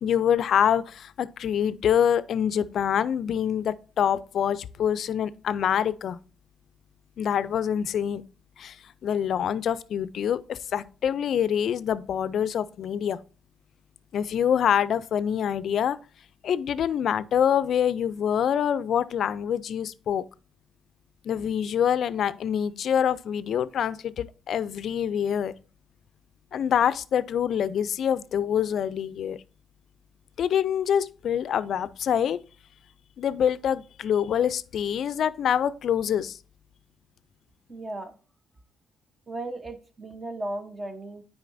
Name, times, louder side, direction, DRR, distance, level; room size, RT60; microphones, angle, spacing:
voice 1, 0.0-6.2 7.2-8.2 8.6-8.8 9.0-13.2 14.1-16.0 16.4-20.2 21.2-25.5 26.5-29.4 30.4-32.4 33.2-36.4, left 9 dB, 65° left, 0.4 m, -25 dB
voice 2, 37.7-38.2 39.3-41.2, right 2 dB, 25° right, 1.0 m, -35 dB
9.1 x 4.9 x 2.6 m
cardioid pair, 90°, 0 cm